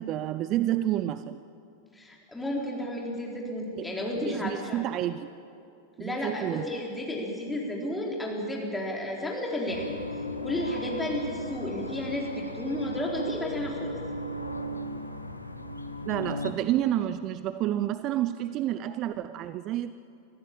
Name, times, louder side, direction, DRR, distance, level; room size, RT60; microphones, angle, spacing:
voice 1, 0.0-1.4 3.8-3.9 4.2-5.3 6.0-6.7 16.1-19.9, right 13 dB, 35° right, 14 dB, 0.5 m, -29 dB
voice 2, 1.9-4.8 6.0-9.9 10.4-14.0, left 1 dB, 5° left, -2 dB, 4.3 m, -32 dB
sound 1, 9.7-16.5, equal, 85° left, 1.1 m, -36 dB
24.5 x 15.0 x 8.7 m, 2.6 s
figure-of-eight pair, 90°, 0 cm